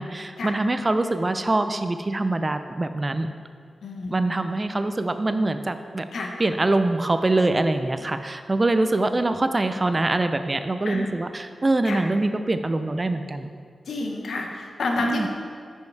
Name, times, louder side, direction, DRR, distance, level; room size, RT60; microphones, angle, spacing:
voice 1, 0.0-3.3 4.1-6.0 6.4-13.5 15.0-15.3, right 2 dB, 30° right, 9 dB, 0.3 m, -24 dB
voice 2, 3.8-4.1 6.1-6.3 10.8-11.1 11.8-12.0 13.9-15.3, left 3 dB, 85° left, 2 dB, 0.7 m, -29 dB
5.4 x 4.5 x 4.6 m, 2.1 s
cardioid pair, 70°, 0 cm